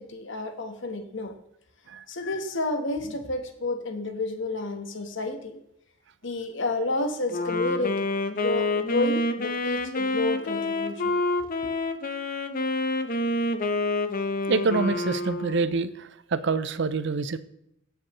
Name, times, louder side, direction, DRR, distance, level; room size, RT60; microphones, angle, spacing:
voice 1, 0.0-1.3 2.1-5.5 6.2-11.0, left 2 dB, 70° left, 6 dB, 1.2 m, -30 dB
Wind instrument woodwind instrument, 7.3-15.9, left 2 dB, 45° left, 0.9 m, -28 dB
voice 2, 14.5-17.4, right 4 dB, 65° right, 13 dB, 0.6 m, -26 dB
17.5 x 6.7 x 3.1 m, 0.76 s
head